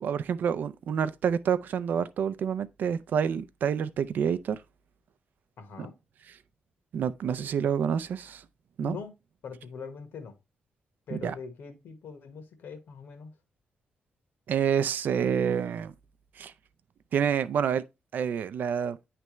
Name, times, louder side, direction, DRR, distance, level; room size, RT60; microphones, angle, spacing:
voice 1, 0.0-4.6 5.8-5.9 6.9-8.5 8.8-9.0 11.1-11.3 14.5-15.9 16.4-16.5 17.1-17.8 18.1-19.0, right 7 dB, 60° right, 0.4 m, -28 dB
voice 2, 5.6-5.9 8.8-9.1 9.4-10.4 11.1-13.3, left 5 dB, 80° left, 1.3 m, -42 dB
9.2 x 3.3 x 3.0 m
wide cardioid pair, 175°, 3 cm